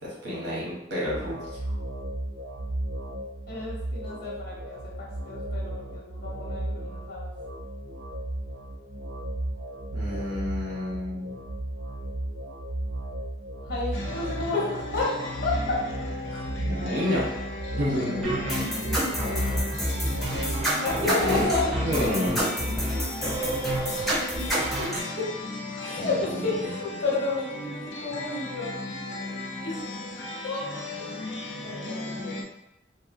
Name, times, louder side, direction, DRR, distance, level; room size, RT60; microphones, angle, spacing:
voice 1, 0.0-1.4 9.9-11.4 16.6-17.3 17.8-18.3 21.2-21.4 21.8-22.4 26.0-26.4, left 1 dB, 85° right, -7 dB, 1.0 m, -29 dB
sound 1, 1.1-20.7, right 1 dB, 60° right, 0.4 m, -35 dB
voice 2, 3.5-7.3 13.7-15.1 15.4-15.8 16.3-16.4 17.7-17.8 20.8-21.8 24.8-24.9 25.2-25.3 25.8-29.8 30.4-30.6 31.0-31.1 31.6-32.5, left 3 dB, 55° left, -5 dB, 0.8 m, -31 dB
sound 2, 13.9-32.4, left 2 dB, 90° left, 0.5 m, -36 dB
sound 3, 18.2-25.0, equal, ahead, 0.6 m, -28 dB
2.9 x 2.1 x 2.5 m, 0.90 s
head